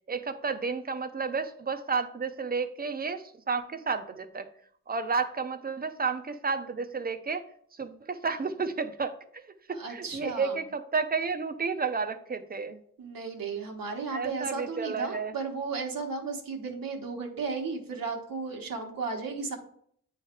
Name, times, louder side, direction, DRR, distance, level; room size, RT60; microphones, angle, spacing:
voice 1, 0.1-4.5 4.9-7.4 7.7-9.5 9.9-12.8 14.1-15.3, right 5 dB, 25° right, 9 dB, 0.6 m, -31 dB
voice 2, 9.7-10.6 13.0-19.6, right 4 dB, 85° right, 1 dB, 1.2 m, -34 dB
8.6 x 3.2 x 4.3 m, 0.63 s
wide cardioid pair, 115°, 34 cm